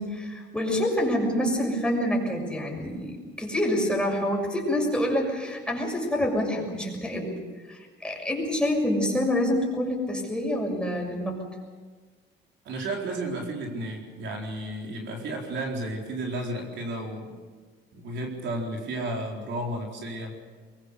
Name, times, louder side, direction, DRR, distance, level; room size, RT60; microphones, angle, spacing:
voice 1, 0.0-7.3 7.7-11.4, left 1 dB, 5° left, -1 dB, 6.7 m, -27 dB
voice 2, 12.6-17.3 17.9-20.4, right 1 dB, 70° right, 0 dB, 4.3 m, -33 dB
23.0 x 22.5 x 6.8 m, 1.5 s
cardioid pair, 110°, 20 cm